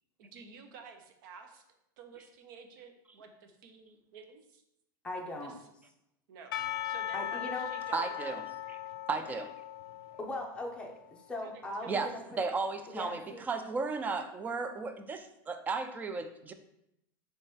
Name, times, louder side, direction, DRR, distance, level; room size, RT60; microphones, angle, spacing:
voice 1, 0.2-1.6 2.0-4.6 5.4-5.5 6.3-6.6 6.8-8.3 9.2-9.4 11.4-12.3, right 5 dB, 65° right, 5 dB, 0.7 m, -52 dB
voice 2, 5.0-5.6 7.1-7.7 10.2-12.4 12.9-13.5, left 1 dB, 10° left, -1 dB, 0.8 m, -40 dB
Percussion / Church bell, 6.5-10.9, left 12 dB, 85° left, 0.4 m, -39 dB
voice 3, 7.9-8.4 9.1-9.5 11.9-12.1 12.4-16.5, right 4 dB, 15° right, 9 dB, 0.3 m, -34 dB
3.2 x 3.2 x 4.4 m, 0.80 s
supercardioid pair, 135°, 12 cm